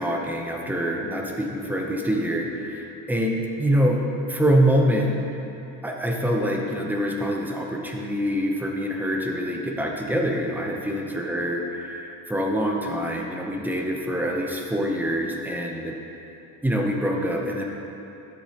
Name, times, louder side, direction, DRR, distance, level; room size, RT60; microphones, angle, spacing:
voice 1, 0.0-4.0 4.3-5.2 5.8-15.9 16.6-17.6, equal, 5° right, 0 dB, 0.5 m, -25 dB
11.5 x 7.9 x 2.8 m, 2.9 s
cardioid pair, 155°, 41 cm